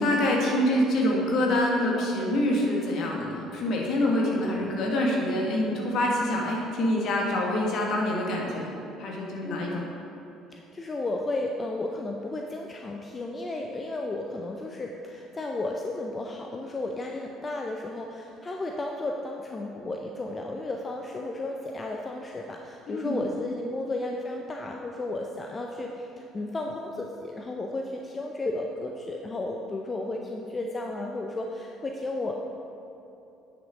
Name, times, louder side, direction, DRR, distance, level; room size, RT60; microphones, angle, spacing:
voice 1, 0.0-8.7 9.0-9.9 22.9-23.2, left 1 dB, 55° left, -1 dB, 1.6 m, -26 dB
voice 2, 4.2-4.6 9.4-9.8 10.5-32.3, left 2 dB, 30° left, 2 dB, 0.6 m, -33 dB
9.0 x 6.3 x 4.9 m, 2.8 s
figure-of-eight pair, 55°, 0 cm